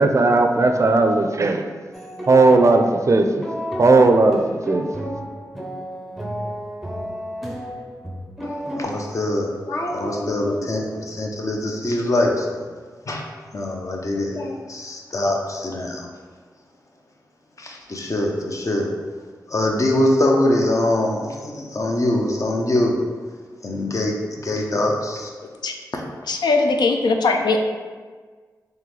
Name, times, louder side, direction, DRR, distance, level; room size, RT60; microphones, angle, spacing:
voice 1, 0.0-1.7 2.3-3.5 3.8-4.9, right 3 dB, 45° right, 5 dB, 0.4 m, -16 dB
sound 1, 1.9-8.8, equal, ahead, 0.6 m, -32 dB
voice 2, 8.7-12.6 13.1-13.2 13.5-16.1 17.6-18.9 19.5-23.0 23.6-25.3, left 1 dB, 50° left, 0 dB, 0.7 m, -23 dB
voice 3, 26.3-27.6, left 3 dB, 85° left, 4 dB, 0.3 m, -19 dB
3.7 x 3.0 x 3.2 m, 1.5 s
cardioid pair, 60°, 7 cm